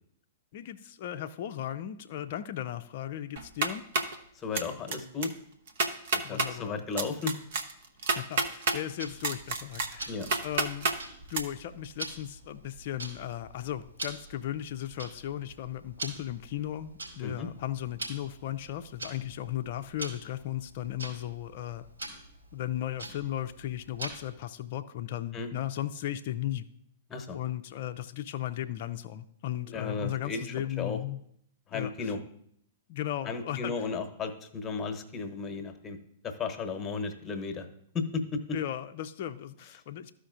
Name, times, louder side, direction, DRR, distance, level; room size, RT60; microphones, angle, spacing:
voice 1, 0.5-3.8 6.2-6.8 8.1-10.1 10.4-21.9 22.5-26.6 27.3-31.2 31.7-32.1 32.9-33.9 38.5-40.1, left 12 dB, 45° left, 7 dB, 0.4 m, -36 dB
sound 1, 3.4-4.2 4.5-5.0 5.2-5.3 5.7-6.5 7.0-8.8 9.2-11.0 11.3-11.4, right 4 dB, 55° right, 0.9 m, -29 dB
voice 2, 4.3-5.3 6.3-7.4 10.1-10.3 17.2-17.5 25.3-25.5 27.1-27.4 29.7-31.0 31.7-32.2 33.2-36.0 36.2-37.7 37.9-38.6, left 4 dB, 20° left, 6 dB, 1.1 m, -34 dB
Tick-tock, 9.0-24.4, right 2 dB, 75° right, 3.5 m, -45 dB
14.0 x 5.0 x 2.6 m, 0.69 s
figure-of-eight pair, 105°, 0 cm